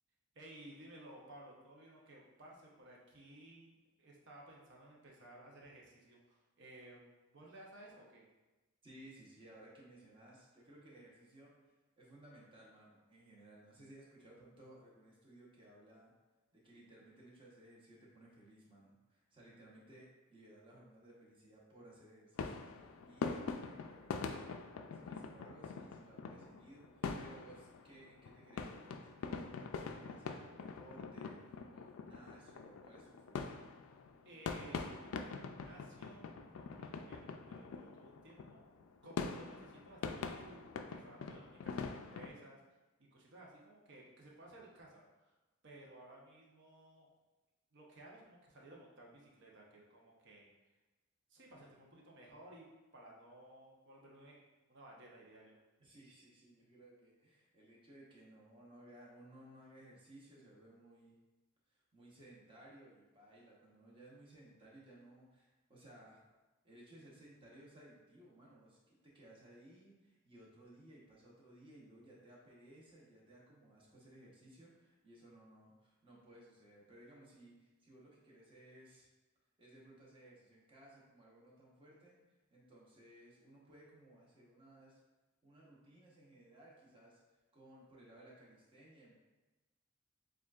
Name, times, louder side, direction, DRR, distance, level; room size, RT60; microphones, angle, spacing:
voice 1, 0.3-7.1 7.3-8.2 34.2-38.6 39.0-42.8 43.1-45.4 45.6-47.1 47.7-50.5 51.3-52.7 52.9-54.4 54.7-55.6, right 1 dB, 60° right, -2 dB, 0.9 m, -57 dB
voice 2, 8.8-11.6 12.0-16.1 16.5-24.6 24.9-33.3 55.8-61.1 61.7-66.3 66.6-79.1 79.6-85.0 85.4-87.2 87.5-89.1, right 1 dB, 25° right, -5 dB, 1.0 m, -60 dB
sound 1, 22.4-42.3, left 4 dB, 75° left, 0.4 m, -44 dB
7.0 x 2.5 x 2.4 m, 1.1 s
head